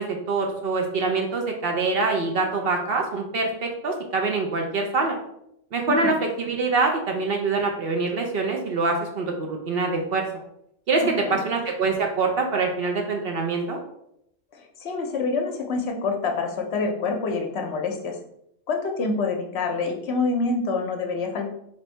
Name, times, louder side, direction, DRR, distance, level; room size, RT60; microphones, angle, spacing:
voice 1, 0.0-5.2 5.7-10.3 10.9-13.8, right 3 dB, 60° right, 2 dB, 0.8 m, -25 dB
voice 2, 11.0-11.4 14.5-18.2 18.7-21.5, left 4 dB, 65° left, 3 dB, 0.8 m, -27 dB
3.3 x 2.6 x 4.3 m, 0.76 s
omnidirectional pair, 1.3 m